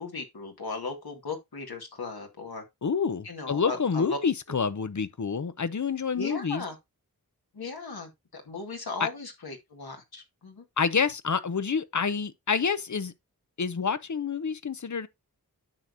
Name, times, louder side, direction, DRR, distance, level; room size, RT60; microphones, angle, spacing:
voice 1, 0.0-2.6 3.2-4.2 6.2-6.8 7.5-10.6, left 3 dB, 85° left, 2.2 m, -37 dB
voice 2, 2.8-6.6 9.0-9.1 10.8-13.1 13.6-15.1, left 6 dB, 55° left, 0.8 m, -28 dB
9.7 x 6.5 x 2.6 m
cardioid pair, 40°, 36 cm